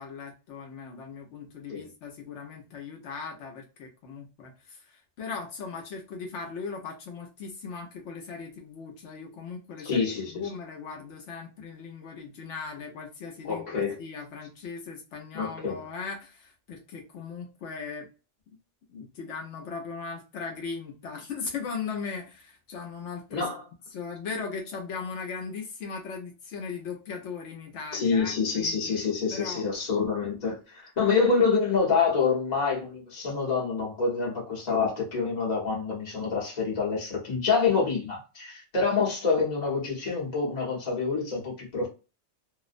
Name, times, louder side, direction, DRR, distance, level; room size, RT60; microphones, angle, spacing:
voice 1, 0.0-18.1 18.9-23.5 23.9-29.0 29.3-29.6, left 5 dB, 80° left, 0.9 m, -38 dB
voice 2, 9.8-10.5 13.4-13.9 15.3-15.8 23.3-23.6 27.9-41.9, left 5 dB, 40° left, 0.9 m, -27 dB
2.4 x 2.0 x 2.4 m
omnidirectional pair, 1.2 m